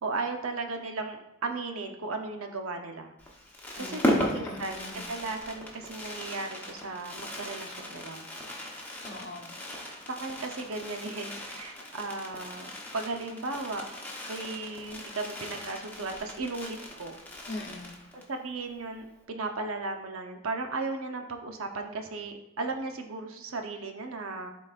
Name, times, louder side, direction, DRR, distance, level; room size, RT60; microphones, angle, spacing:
voice 1, 0.0-3.1 3.8-8.3 10.1-13.9 14.3-17.2 18.3-24.5, right 3 dB, 85° right, 4 dB, 0.8 m, -36 dB
Fireworks, 3.2-18.4 18.7-18.8 19.0-19.2, left 1 dB, 10° left, 0.9 m, -37 dB
voice 2, 3.8-5.1 9.0-9.6 17.5-18.0, left 2 dB, 55° left, 3 dB, 0.8 m, -41 dB
11.0 x 4.1 x 2.4 m, 0.88 s
head